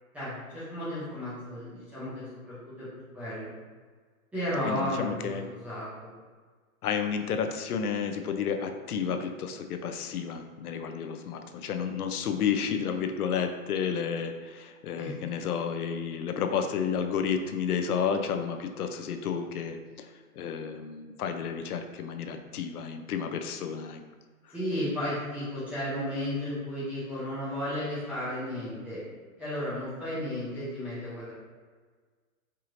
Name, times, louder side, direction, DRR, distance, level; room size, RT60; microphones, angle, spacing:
voice 1, 0.1-2.9 3.1-3.5 4.3-6.1 15.0-15.1 24.5-29.0 29.4-31.3, left 1 dB, 5° right, -12 dB, 0.4 m, -34 dB
voice 2, 4.6-5.4 6.8-24.0, left 7 dB, 90° left, 6 dB, 0.6 m, -31 dB
4.7 x 2.9 x 2.5 m, 1.5 s
hypercardioid pair, 145°, 44 cm